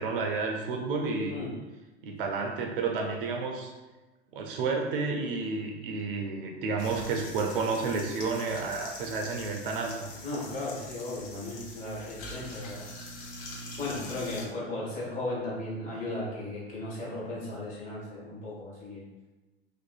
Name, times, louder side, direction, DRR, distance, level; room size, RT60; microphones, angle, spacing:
voice 1, 0.0-1.4 2.0-3.7 4.3-10.1, right 4 dB, 55° right, 1 dB, 0.4 m, -31 dB
sound 1, 6.8-14.5, left 1 dB, 50° left, 0.6 m, -43 dB
voice 2, 10.2-12.9 13.8-19.0, left 2 dB, 25° left, -6 dB, 0.9 m, -36 dB
2.5 x 2.4 x 2.2 m, 1.1 s
figure-of-eight pair, 85°, 32 cm